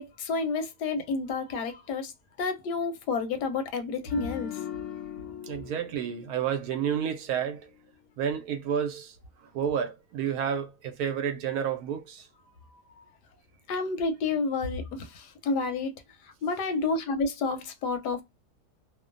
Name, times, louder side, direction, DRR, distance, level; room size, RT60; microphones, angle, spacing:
voice 1, 0.0-2.1 2.4-4.8 13.7-18.2, left 4 dB, 85° left, 1.3 m, -30 dB
sound 1, 4.1-7.3 7.6-7.9, left 11 dB, 65° left, 0.8 m, -41 dB
voice 2, 5.5-7.6 8.2-9.1 9.5-12.3, right 8 dB, 70° right, 1.0 m, -30 dB
2.9 x 2.1 x 2.4 m
omnidirectional pair, 1.7 m